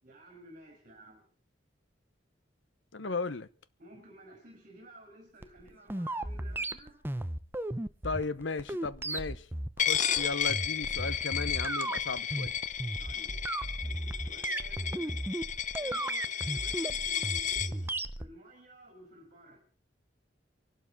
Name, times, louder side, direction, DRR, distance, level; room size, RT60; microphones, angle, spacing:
voice 1, 0.0-1.2 3.0-3.2 3.8-7.0 13.0-13.4 13.8-15.4 15.8-19.6, right 1 dB, 45° right, 4.6 m, -54 dB
voice 2, 2.9-3.5 8.0-9.5 9.8-12.5, left 3 dB, 75° left, 0.9 m, -36 dB
sound 1, 5.4-18.3, right 1 dB, 10° right, 0.7 m, -35 dB
Coin (dropping), 9.8-17.7, left 9 dB, 40° left, 0.7 m, -33 dB
25.0 x 12.0 x 4.1 m
head